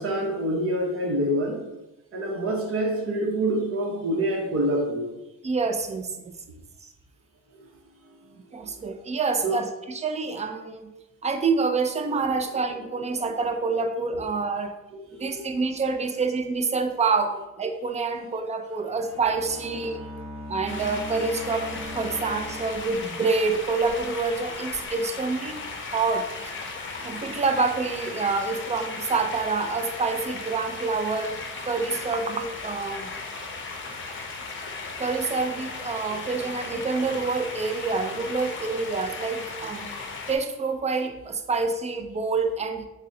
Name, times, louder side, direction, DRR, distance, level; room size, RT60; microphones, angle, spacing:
voice 1, 0.0-1.6 2.1-5.1 9.4-9.6 12.7-12.9 14.1-14.2 14.9-15.4 31.7-31.9 36.1-36.2, right 1 dB, 50° right, -1 dB, 0.9 m, -27 dB
voice 2, 5.4-6.3 8.5-10.9 11.2-14.7 15.1-20.0 20.5-26.5 27.0-31.4 31.6-33.1 35.0-39.9 40.3-42.8, right 4 dB, 25° right, 6 dB, 0.4 m, -27 dB
Bowed string instrument, 18.7-23.4, left 1 dB, 10° left, 1.3 m, -40 dB
sound 1, 20.7-40.4, left 4 dB, 40° left, 0.6 m, -36 dB
3.9 x 2.1 x 3.6 m, 1.0 s
cardioid pair, 90°, 30 cm